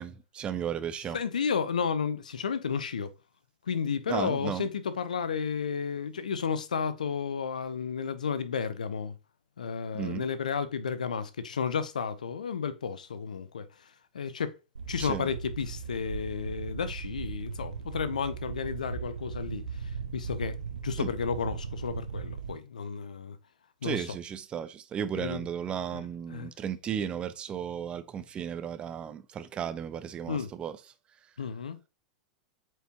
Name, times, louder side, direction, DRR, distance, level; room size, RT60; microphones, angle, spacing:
voice 1, 0.0-1.2 4.1-4.7 9.9-10.3 15.0-15.3 21.0-21.1 23.8-30.8, right 8 dB, 25° right, 0.7 m, -35 dB
voice 2, 1.1-3.1 3.7-9.2 9.6-13.7 14.1-14.5 14.9-19.7 20.1-20.5 20.8-23.4 23.8-24.1 25.2-25.4 25.9-26.0 26.3-26.5 30.3-30.5 31.4-31.9, left 6 dB, 70° left, 0.7 m, -32 dB
sound 1, 14.7-22.5, right 5 dB, 75° right, 1.1 m, -38 dB
7.9 x 4.6 x 2.9 m
figure-of-eight pair, 95°, 4 cm